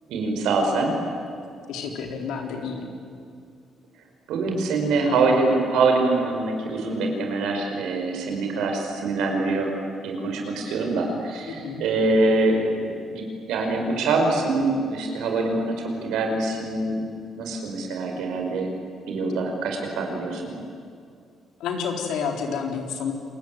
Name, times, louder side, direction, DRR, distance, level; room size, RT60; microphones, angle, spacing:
voice 1, 0.1-1.0 4.3-9.7 10.0-17.1 17.4-18.7 19.1-20.6, right 3 dB, 85° right, 3 dB, 5.4 m, -24 dB
voice 2, 1.7-2.9 11.5-11.8 21.6-23.1, left 6 dB, 85° left, 3 dB, 4.0 m, -29 dB
27.5 x 21.5 x 9.3 m, 2.3 s
cardioid pair, 90°, 0 cm